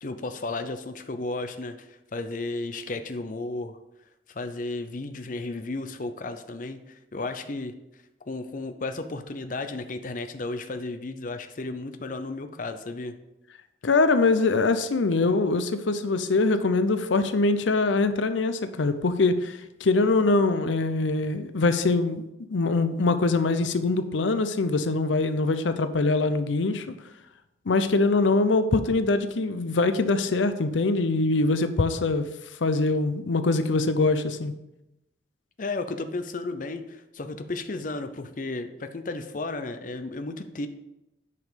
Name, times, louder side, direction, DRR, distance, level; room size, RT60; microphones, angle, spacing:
voice 1, 0.0-3.8 4.3-7.7 8.3-13.1 35.6-40.7, left 2 dB, 45° left, 8 dB, 0.6 m, -33 dB
voice 2, 13.8-22.2 22.5-26.9 27.7-32.3 32.6-34.5, left 3 dB, 90° left, 10 dB, 0.6 m, -23 dB
9.4 x 5.3 x 5.1 m, 0.89 s
head